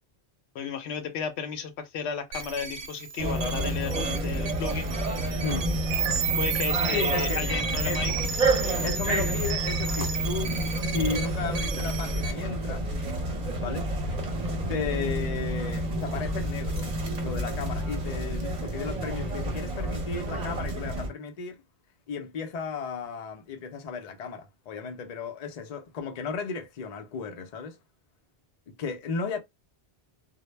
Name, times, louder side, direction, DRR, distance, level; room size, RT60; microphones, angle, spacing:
voice 1, 0.5-4.9 6.4-8.1, left 7 dB, 85° left, 0.8 m, -33 dB
sound 1, 2.3-12.3, right 6 dB, 75° right, 0.8 m, -32 dB
sound 2, 3.2-21.1, right 1 dB, 45° right, 0.7 m, -29 dB
voice 2, 6.9-7.4 7.8-8.1 8.8-10.5 10.8-12.8 13.6-13.9 14.7-16.9 17.2-21.6 22.1-27.8 28.7-29.4, left 5 dB, 50° left, 0.5 m, -34 dB
2.1 x 2.0 x 3.1 m
omnidirectional pair, 1.1 m